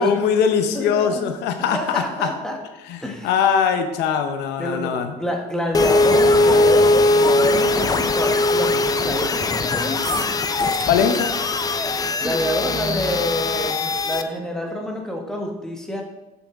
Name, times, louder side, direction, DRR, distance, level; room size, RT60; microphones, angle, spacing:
voice 1, 0.0-2.3 2.9-5.2 10.9-11.3, left 7 dB, 85° left, 7 dB, 0.7 m, -21 dB
voice 2, 0.7-1.3 1.6-2.6 3.0-3.3 4.6-4.9 5.2-10.3 12.2-16.0, equal, 5° left, 1 dB, 1.2 m, -27 dB
sound 1, 5.7-14.2, left 2 dB, 20° left, 0.4 m, -20 dB
sound 2, 10.0-11.2, right 10 dB, 75° right, 0.7 m, -35 dB
6.3 x 5.6 x 3.7 m, 1.0 s
cardioid pair, 110°, 17 cm